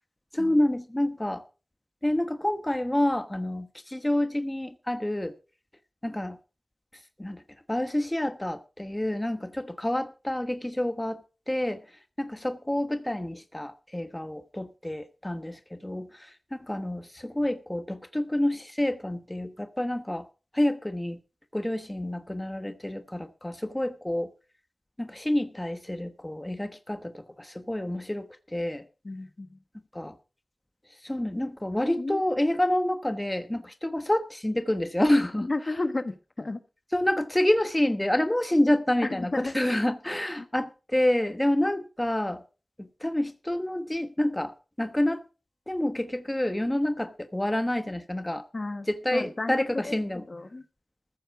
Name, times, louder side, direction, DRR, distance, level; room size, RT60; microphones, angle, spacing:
voice 1, 0.3-1.4 2.0-5.3 6.0-6.4 7.2-7.4 7.7-11.8 12.2-20.3 20.5-21.2 21.5-24.3 25.0-28.8 29.9-30.2 31.0-35.5 36.9-42.4 42.8-45.2 45.7-48.4 48.9-50.2, left 1 dB, 15° left, 1.1 m, -28 dB
voice 2, 29.0-29.6 32.0-32.2 35.4-36.6 39.0-39.5 40.4-40.5 48.5-50.6, left 2 dB, 45° left, 1.2 m, -33 dB
14.5 x 7.6 x 6.0 m
wide cardioid pair, 80°, 0 cm